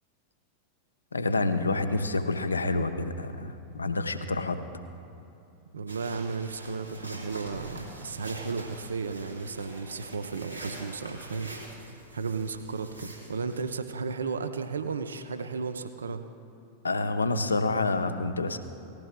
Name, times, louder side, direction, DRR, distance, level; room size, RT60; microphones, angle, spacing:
voice 1, 1.1-4.6 16.8-18.6, left 2 dB, 75° left, 9 dB, 0.7 m, -28 dB
voice 2, 5.7-16.2, right 4 dB, 70° right, 9 dB, 0.5 m, -34 dB
sound 1, 5.9-13.6, right 1 dB, 85° right, 2.8 m, -44 dB
19.0 x 15.0 x 2.2 m, 2.9 s
figure-of-eight pair, 90°, 0 cm